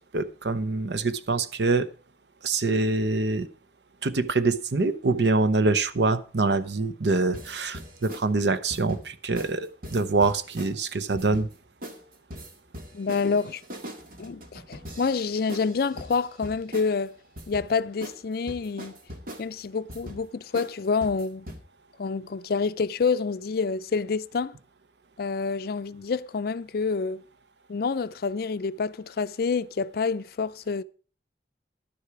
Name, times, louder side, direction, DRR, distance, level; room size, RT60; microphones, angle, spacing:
voice 1, 0.1-1.9 2.4-3.5 4.0-11.5, right 3 dB, 75° right, 0.8 m, -25 dB
sound 1, 7.3-8.2 8.7-9.0 9.4-9.5 9.8-10.7 11.1-11.5 11.8-12.0 12.3-16.9 17.4-17.7 18.0-18.2 18.5-19.4 19.9-20.2 20.5-20.7 21.0-21.6, equal, 55° right, 1.9 m, -41 dB
voice 2, 12.9-13.6 14.2-17.2 17.5-18.9 19.4-21.5 22.0-24.6 25.2-27.2 27.7-30.8, left 5 dB, 60° left, 0.4 m, -28 dB
11.5 x 9.9 x 4.7 m
head